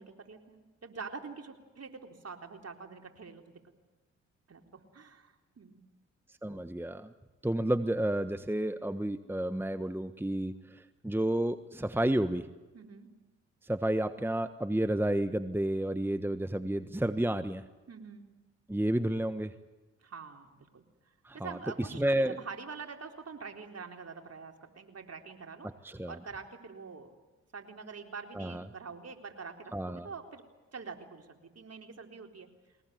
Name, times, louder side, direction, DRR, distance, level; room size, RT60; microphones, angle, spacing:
voice 1, 0.0-3.4 4.5-5.8 12.7-13.1 17.9-18.2 20.0-20.8 21.3-25.7 26.1-27.1 27.5-30.4 30.7-32.5, right 5 dB, 45° right, 4 dB, 4.0 m, -45 dB
voice 2, 6.3-7.1 7.4-12.5 13.6-17.6 18.7-19.5 21.2-22.4 25.6-26.2 28.3-28.6 29.7-30.1, right 1 dB, 5° right, 11 dB, 1.3 m, -31 dB
22.0 x 20.0 x 9.4 m, 1.2 s
supercardioid pair, 45°, 34 cm